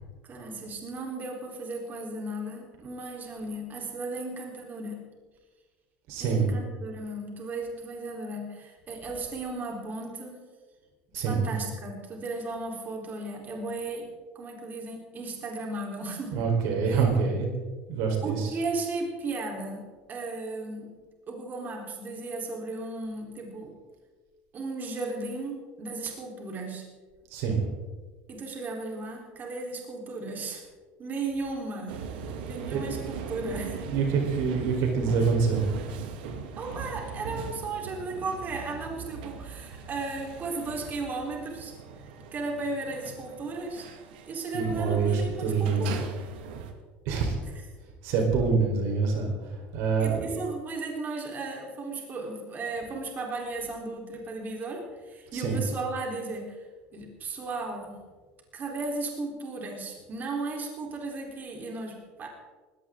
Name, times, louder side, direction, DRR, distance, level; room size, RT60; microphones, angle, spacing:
voice 1, 0.2-5.1 6.2-10.4 11.1-14.1 14.3-16.5 16.8-17.0 18.2-21.0 21.3-23.8 24.5-26.9 28.3-30.6 31.0-32.0 32.4-33.9 36.6-41.7 42.3-43.9 44.3-46.1 50.0-56.6 56.9-58.0 58.5-62.3, right 3 dB, 35° right, 0 dB, 4.2 m, -35 dB
voice 2, 6.1-6.5 11.1-11.5 16.3-17.5 17.9-18.5 27.3-27.6 32.7-32.8 33.9-35.7 44.5-45.9 47.1-47.4 48.0-50.3 55.3-55.6, right 5 dB, 70° right, 2 dB, 4.5 m, -26 dB
sound 1, 31.9-46.7, right 6 dB, 90° right, 2.1 m, -40 dB
19.5 x 17.0 x 3.9 m, 1.3 s
supercardioid pair, 110°, 5 cm